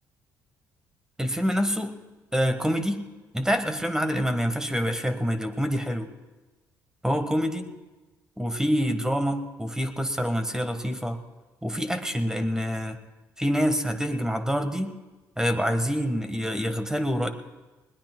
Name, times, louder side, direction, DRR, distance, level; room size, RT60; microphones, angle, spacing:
voice 1, 1.2-1.9 2.3-3.0 3.3-6.1 7.0-7.7 8.4-11.2 11.6-13.0 13.4-14.9 15.4-17.3, equal, 5° right, 8 dB, 1.3 m, -26 dB
20.5 x 18.5 x 2.2 m, 1.2 s
hypercardioid pair, 55°, 8 cm